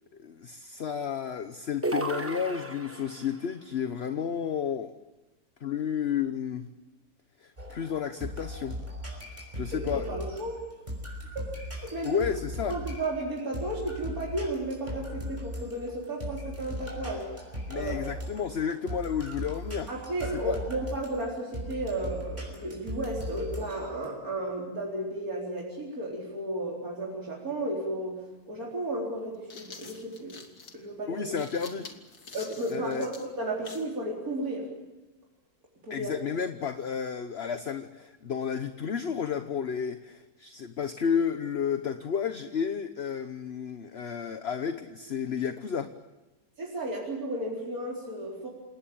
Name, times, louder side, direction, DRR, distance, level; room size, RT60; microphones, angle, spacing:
voice 1, 0.2-4.9 5.6-6.7 7.4-8.8 9.5-10.1 12.0-12.8 17.7-19.9 20.4-20.6 31.1-31.9 32.7-33.1 35.9-45.9, left 7 dB, 45° left, 9 dB, 1.1 m, -32 dB
sound 1, 1.8-3.4, right 2 dB, 10° right, 1.2 m, -33 dB
sound 2, 7.6-24.1, equal, 30° right, 6.0 m, -39 dB
voice 2, 9.7-10.6 11.3-11.5 11.9-12.2 12.7-17.3 17.7-18.1 19.9-28.2 28.5-30.4 30.7-31.3 32.3-34.7 35.8-36.2 46.6-48.5, right 1 dB, 70° right, -3 dB, 4.6 m, -33 dB
risa cigüeña, 28.1-28.2 29.2-34.0, left 4 dB, 85° left, 2.6 m, -47 dB
28.5 x 18.5 x 8.7 m, 1.1 s
omnidirectional pair, 1.6 m